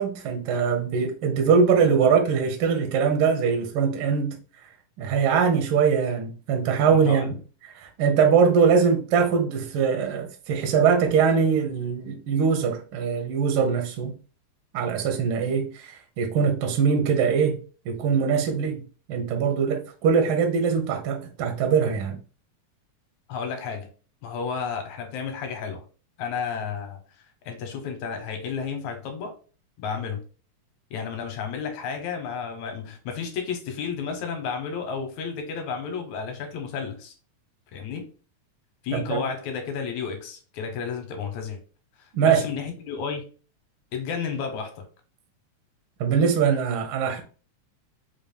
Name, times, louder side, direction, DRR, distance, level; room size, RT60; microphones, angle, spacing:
voice 1, 0.0-4.3 5.0-7.3 7.7-14.1 14.7-17.6 17.8-18.8 19.1-22.2 38.9-39.2 42.1-42.4 46.0-47.2, right 6 dB, 85° right, 1.1 m, -22 dB
voice 2, 6.9-7.3 23.3-23.9 24.2-25.9 26.2-29.4 29.8-30.2 30.9-37.1 37.7-38.1 38.8-41.6 42.0-43.3 43.9-44.9, left 6 dB, 75° left, 2.0 m, -32 dB
5.1 x 2.4 x 3.3 m
omnidirectional pair, 3.7 m